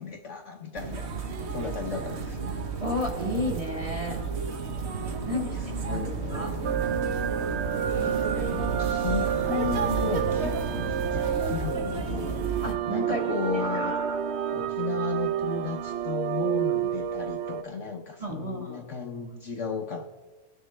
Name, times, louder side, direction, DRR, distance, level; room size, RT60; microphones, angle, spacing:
voice 1, 0.0-2.5 5.1-6.8 7.9-12.6 12.9-14.0 14.5-20.1, left 6 dB, 55° left, 3 dB, 1.0 m, -35 dB
sound 1, 0.7-12.7, right 5 dB, 50° right, 1.1 m, -32 dB
voice 2, 2.8-4.2 5.2-5.6 5.9-6.7 12.6-13.2 13.5-14.2 18.2-18.8, left 1 dB, 20° right, 0 dB, 1.5 m, -32 dB
sound 2, 6.6-17.6, right 9 dB, 75° right, 0.6 m, -29 dB
20.0 x 6.7 x 3.3 m, 1.3 s
omnidirectional pair, 1.7 m